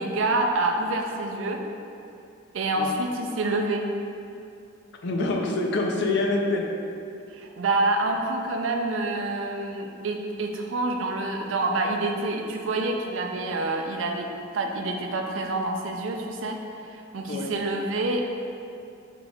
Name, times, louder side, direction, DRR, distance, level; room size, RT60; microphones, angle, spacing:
voice 1, 0.0-1.6 2.5-3.9 7.3-14.3 14.5-18.2, right 2 dB, 75° right, 3 dB, 0.4 m, -27 dB
voice 2, 5.0-6.7 17.3-17.5, left 2 dB, 65° left, 1 dB, 0.5 m, -25 dB
6.0 x 3.7 x 2.3 m, 2.6 s
head